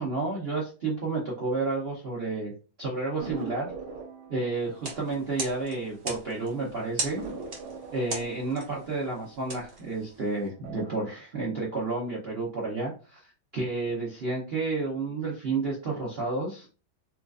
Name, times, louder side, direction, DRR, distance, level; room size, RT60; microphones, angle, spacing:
voice 1, 0.0-2.5 2.8-3.7 4.3-7.2 7.9-16.7, right 3 dB, 90° right, -4 dB, 0.5 m, -31 dB
sound 1, 3.2-6.3 6.6-6.7 7.2-10.1 10.5-11.1, right 4 dB, 65° right, 1.4 m, -42 dB
sound 2, 4.7-10.5, right 3 dB, 45° right, 0.7 m, -39 dB
4.2 x 2.4 x 2.3 m, 0.36 s
omnidirectional pair, 2.1 m